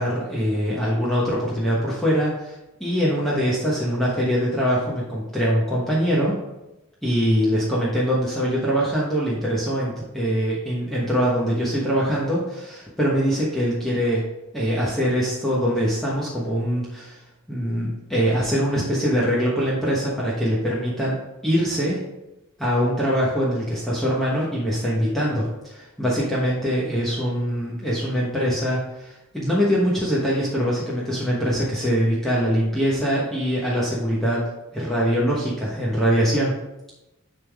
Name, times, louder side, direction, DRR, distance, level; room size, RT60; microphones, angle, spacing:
voice 1, 0.0-2.5 2.8-6.4 7.0-14.2 14.5-17.2 17.5-22.0 22.6-36.5, equal, ahead, -7 dB, 1.2 m, -23 dB
10.5 x 3.7 x 3.5 m, 0.97 s
head